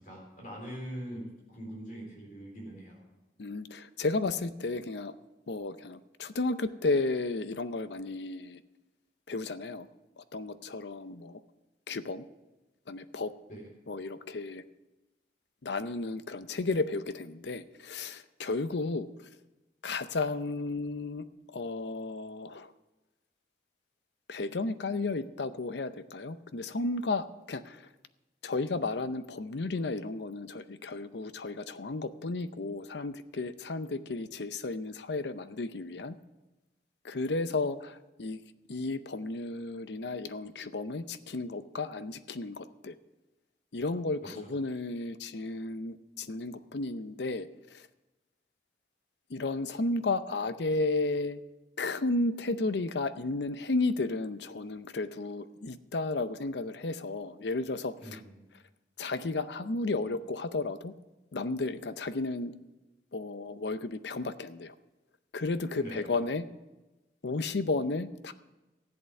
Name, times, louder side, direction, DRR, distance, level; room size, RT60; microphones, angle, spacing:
voice 1, 0.0-3.0 13.5-13.7 44.2-44.5 58.0-58.4 65.8-66.0, right 1 dB, 50° left, -1 dB, 3.7 m, -43 dB
voice 2, 3.4-5.1 5.5-8.6 9.3-9.9 10.2-11.4 11.9-12.2 12.9-13.3 13.9-14.6 15.6-19.1 19.8-21.2 21.5-22.7 24.3-27.9 28.4-36.1 37.0-38.4 38.7-43.0 43.7-47.8 49.3-51.4 51.8-58.2 59.0-60.9 61.3-62.5 63.1-64.7 65.3-66.5 67.2-68.3, left 3 dB, 80° left, 13 dB, 0.7 m, -33 dB
14.5 x 8.1 x 7.0 m, 1.1 s
head